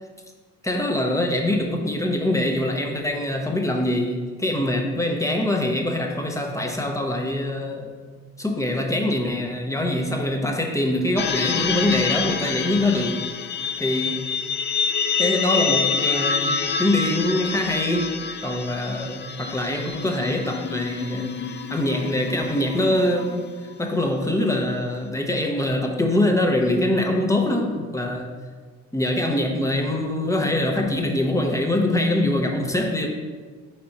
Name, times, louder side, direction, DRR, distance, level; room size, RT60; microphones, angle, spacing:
voice 1, 0.6-7.9 8.4-13.2 13.8-14.2 15.2-18.1 18.4-21.4 21.7-23.5 23.8-28.3 28.9-33.1, left 1 dB, 10° left, 2 dB, 0.9 m, -23 dB
sound 1, 11.2-23.7, left 6 dB, 35° left, 0.4 m, -27 dB
4.6 x 4.3 x 5.2 m, 1.5 s
cardioid pair, 90°, 30 cm